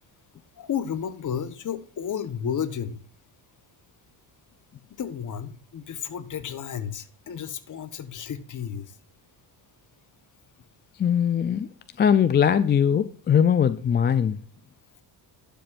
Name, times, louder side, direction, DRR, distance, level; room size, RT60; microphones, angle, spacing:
voice 1, 0.6-3.0 4.9-8.9, left 8 dB, 40° left, 1.1 m, -32 dB
voice 2, 11.0-11.7 12.0-14.4, left 8 dB, 25° left, 0.4 m, -21 dB
11.5 x 6.9 x 2.5 m
cardioid pair, 95°, 47 cm